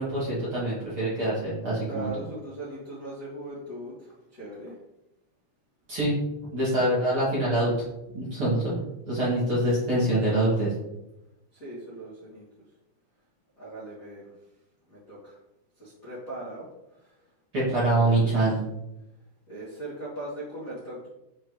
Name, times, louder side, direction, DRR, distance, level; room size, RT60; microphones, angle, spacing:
voice 1, 0.0-2.1 5.9-6.2 6.5-7.7 8.1-8.7 9.0-10.7 17.5-18.6, right 1 dB, 40° right, -10 dB, 2.4 m, -25 dB
voice 2, 1.8-4.7 11.5-12.4 13.6-14.3 14.9-15.4 15.8-16.7 17.0-17.1 17.6-18.3 19.5-21.1, right 1 dB, 40° left, -12 dB, 1.1 m, -39 dB
7.3 x 4.1 x 3.2 m, 0.91 s
omnidirectional pair, 5.0 m